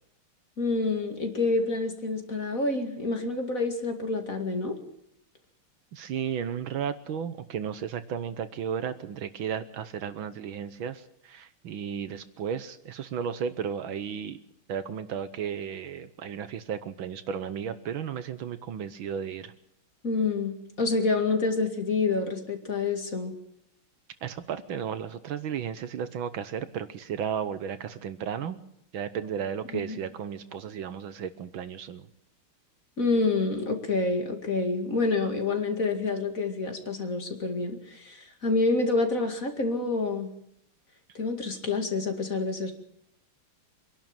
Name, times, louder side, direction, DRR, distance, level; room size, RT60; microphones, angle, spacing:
voice 1, 0.6-4.8 20.0-23.4 29.7-30.0 33.0-40.3 41.1-42.7, left 3 dB, 40° left, 5 dB, 2.6 m, -28 dB
voice 2, 5.9-14.4 14.7-19.5 24.2-28.6 28.9-32.1, right 8 dB, 70° right, 12 dB, 1.7 m, -34 dB
25.0 x 11.5 x 9.0 m, 0.73 s
omnidirectional pair, 2.4 m